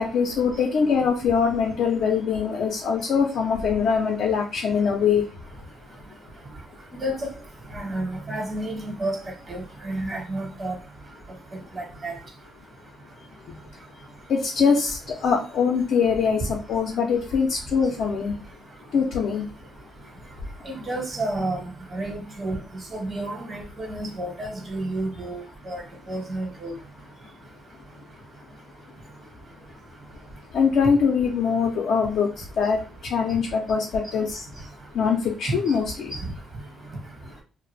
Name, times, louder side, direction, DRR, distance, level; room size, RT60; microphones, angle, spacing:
voice 1, 0.0-5.3 14.3-18.4 18.9-19.4 30.5-34.4 34.9-36.1, left 6 dB, 70° left, 0 dB, 0.5 m, -23 dB
voice 2, 6.9-7.3 7.7-9.2 9.5-10.7 11.7-12.1 20.6-21.6 21.9-22.6 22.9-25.8 26.1-26.7, right 1 dB, 40° right, 2 dB, 1.0 m, -30 dB
2.3 x 2.0 x 3.2 m, 0.35 s
cardioid pair, 90°, 0 cm